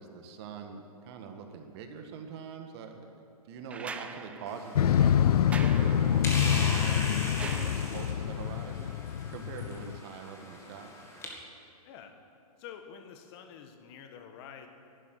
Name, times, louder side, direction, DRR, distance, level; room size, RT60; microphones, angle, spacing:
voice 1, 0.0-8.9 9.3-10.9, right 5 dB, 40° right, 5 dB, 1.7 m, -43 dB
sound 1, 3.7-8.3 9.9-10.0, right 5 dB, 5° right, 0.3 m, -44 dB
sound 2, 4.5-11.3, left 2 dB, 15° left, 2.1 m, -40 dB
Motorcycle, 4.8-10.0, left 9 dB, 80° left, 0.4 m, -26 dB
voice 2, 12.6-14.7, left 8 dB, 40° left, 6 dB, 1.6 m, -47 dB
11.5 x 9.6 x 10.0 m, 2.5 s
hypercardioid pair, 140°, 20 cm